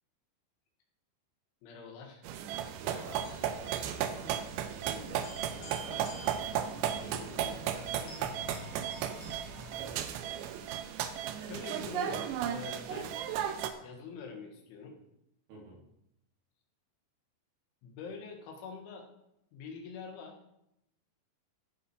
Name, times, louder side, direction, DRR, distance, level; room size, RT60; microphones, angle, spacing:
voice 1, 1.6-2.2 4.0-4.4 6.9-8.4 11.4-13.2 13.8-15.0 17.8-19.1 19.5-20.4, left 5 dB, 85° left, 3 dB, 4.1 m, -46 dB
sound 1, 2.2-13.7, right 9 dB, 80° right, 2.7 m, -35 dB
voice 2, 2.8-3.5 4.9-6.1 15.5-15.8, equal, 60° right, -3 dB, 4.8 m, -49 dB
sound 2, 3.0-10.5, left 2 dB, 60° left, 4.5 m, -50 dB
16.5 x 5.9 x 4.7 m, 0.80 s
omnidirectional pair, 5.4 m